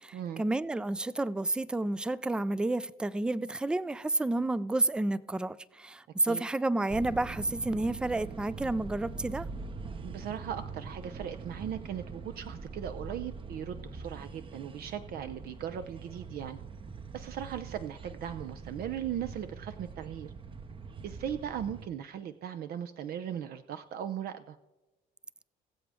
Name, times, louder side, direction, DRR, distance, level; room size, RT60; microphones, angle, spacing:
voice 1, 0.0-9.5, right 2 dB, 5° right, 0.3 m, -30 dB
sound 1, 6.9-21.9, right 4 dB, 30° right, 0.8 m, -43 dB
voice 2, 10.0-16.6 17.1-20.3 21.0-24.6, right 9 dB, 65° right, 0.6 m, -38 dB
21.0 x 7.4 x 3.5 m
cardioid pair, 110°, 17 cm